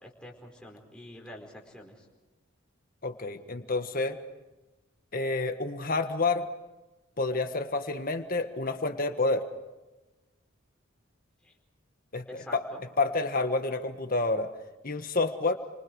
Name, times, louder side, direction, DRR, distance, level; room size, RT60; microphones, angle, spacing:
voice 1, 0.0-2.0 11.4-11.5 12.3-12.8, left 1 dB, 5° left, -1 dB, 4.6 m, -46 dB
voice 2, 3.0-4.2 5.1-6.5 7.2-9.4 12.1-12.2 12.5-12.6 13.0-14.5 14.8-15.5, left 3 dB, 45° left, 7 dB, 1.6 m, -28 dB
29.5 x 26.0 x 4.8 m, 1.1 s
head